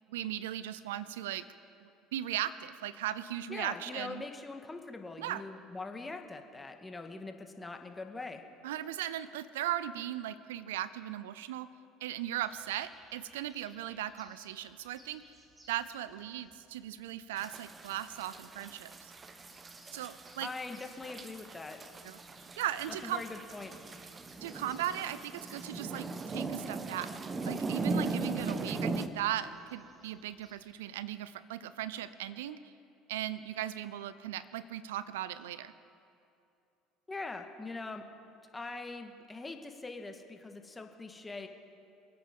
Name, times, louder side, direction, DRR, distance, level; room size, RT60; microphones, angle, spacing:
voice 1, 0.1-1.4 1.8-4.2 5.2-5.4 8.6-11.7 12.0-15.2 15.7-19.1 19.9-20.5 22.0-22.2 22.6-23.2 24.4-27.1 27.5-32.6 33.1-35.7, right 12 dB, 85° right, 15 dB, 0.5 m, -37 dB
voice 2, 3.5-8.4 20.4-21.8 22.9-23.7 37.1-38.0 38.5-41.5, left 3 dB, 15° left, 5 dB, 1.7 m, -42 dB
sound 1, 12.3-30.5, equal, 15° right, 4.3 m, -63 dB
sound 2, 17.4-29.1, right 3 dB, 30° right, 1.0 m, -39 dB
26.5 x 8.9 x 5.3 m, 2.6 s
hypercardioid pair, 80°, 0 cm